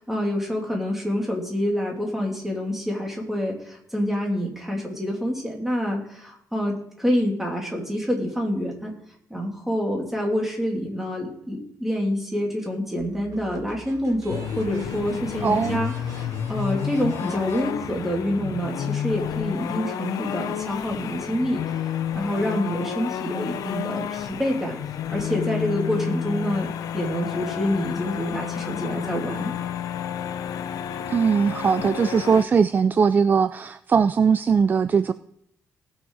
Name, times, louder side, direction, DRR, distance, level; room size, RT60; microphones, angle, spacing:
voice 1, 0.0-8.9 9.3-24.8 25.1-29.5, equal, 5° right, -1 dB, 2.9 m, -27 dB
sound 1, 13.0-18.6, right 5 dB, 75° right, 1.6 m, -45 dB
sound 2, 14.3-32.4, left 9 dB, 85° left, 0.6 m, -30 dB
voice 2, 15.4-15.8 31.1-35.1, right 6 dB, 30° right, 13 dB, 0.4 m, -20 dB
18.5 x 6.5 x 4.8 m, 0.74 s
cardioid pair, 150°, 6 cm